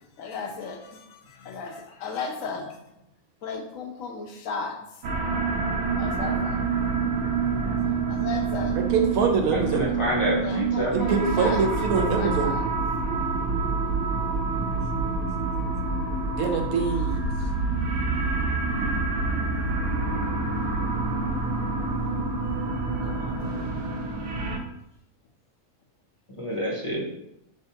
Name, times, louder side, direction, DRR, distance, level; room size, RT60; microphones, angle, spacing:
voice 1, 0.2-2.8 3.4-4.8 6.0-6.8 7.2-7.8 8.1-8.8 10.4-11.6 11.9-12.7 14.6-14.7 23.0-23.7, left 4 dB, 75° left, 3 dB, 1.0 m, -36 dB
sound 1, 5.0-24.6, right 4 dB, 65° right, 0.9 m, -27 dB
voice 2, 8.7-9.9 10.9-12.5 16.4-17.2, right 5 dB, 85° right, 2 dB, 1.2 m, -24 dB
voice 3, 9.7-11.1 26.4-27.0, equal, 30° left, -4 dB, 0.6 m, -27 dB
4.4 x 3.2 x 2.8 m, 0.84 s
omnidirectional pair, 1.5 m